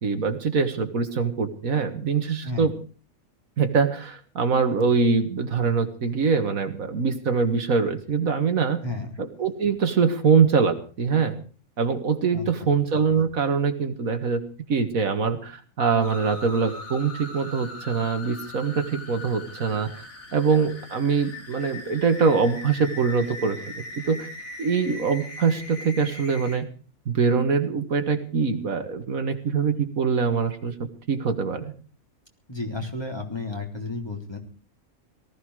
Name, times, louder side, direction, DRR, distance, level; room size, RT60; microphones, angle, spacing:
voice 1, 0.0-2.7 3.6-8.8 9.2-11.4 11.8-14.4 14.7-20.1 20.3-24.3 24.6-26.7 27.1-31.7, right 5 dB, 75° right, 7 dB, 2.0 m, -23 dB
sound 1, 16.0-26.6, left 2 dB, 70° left, 3.8 m, -40 dB
voice 2, 32.5-34.4, left 3 dB, 15° left, 2 dB, 3.4 m, -32 dB
19.0 x 14.0 x 4.8 m, 0.38 s
omnidirectional pair, 1.5 m